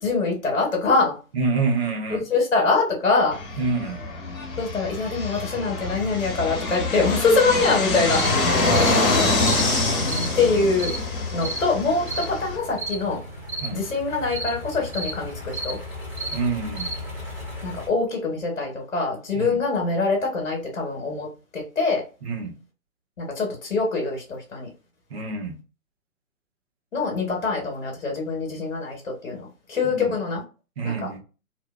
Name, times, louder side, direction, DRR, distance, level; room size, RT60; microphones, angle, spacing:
voice 1, 0.0-1.1 2.1-3.4 4.6-8.2 10.4-11.0 11.3-13.2 13.7-15.8 17.6-21.3 21.5-22.0 23.3-24.7 26.9-30.4 30.8-31.1, left 3 dB, 65° left, 1.1 m, -24 dB
voice 2, 1.3-2.2 3.6-4.0 8.6-9.4 13.6-13.8 16.3-16.9 19.3-19.6 22.2-22.5 25.1-25.6 30.0-30.1 30.8-31.2, right 4 dB, 50° right, 0.9 m, -27 dB
Fixed-wing aircraft airplane, 3.3-12.6, left 3 dB, 40° left, 1.0 m, -25 dB
sound 1, 8.1-17.9, left 2 dB, 10° right, 0.5 m, -36 dB
sound 2, 8.1-8.3 8.7-8.9 9.4-9.7 10.1-10.3 10.8-11.0 11.4-11.6 12.1-12.3 12.8-13.0 13.5-13.7 14.3-14.5 14.9-15.2 15.5-15.8 16.2-16.4 16.8-17.0, right 3 dB, 80° right, 0.8 m, -31 dB
2.7 x 2.1 x 2.3 m
figure-of-eight pair, 135°, 42 cm